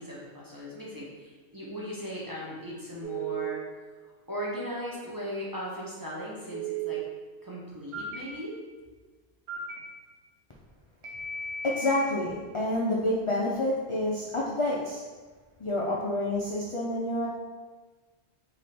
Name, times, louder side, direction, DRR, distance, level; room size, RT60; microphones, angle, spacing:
voice 1, 0.0-3.6 4.3-7.0 7.4-8.5, equal, 20° right, -6 dB, 0.7 m, -38 dB
Telephone, 3.0-3.5 6.5-7.0 7.9-8.2 9.5-9.8 11.0-12.1, right 6 dB, 75° right, 0.9 m, -34 dB
voice 2, 11.6-15.0 15.6-17.3, left 1 dB, 45° left, -4 dB, 0.4 m, -28 dB
3.4 x 2.9 x 4.1 m, 1.4 s
omnidirectional pair, 1.1 m